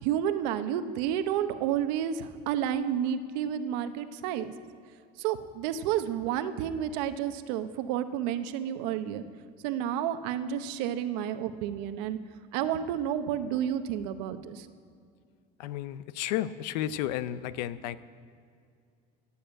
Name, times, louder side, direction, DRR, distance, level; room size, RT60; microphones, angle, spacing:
voice 1, 0.0-4.5 5.2-9.2 9.6-12.2 12.5-14.7, right 10 dB, 80° right, 10 dB, 1.0 m, -30 dB
voice 2, 15.6-18.0, left 12 dB, 85° left, 15 dB, 0.6 m, -32 dB
16.5 x 7.1 x 8.9 m, 2.3 s
supercardioid pair, 110°, 21 cm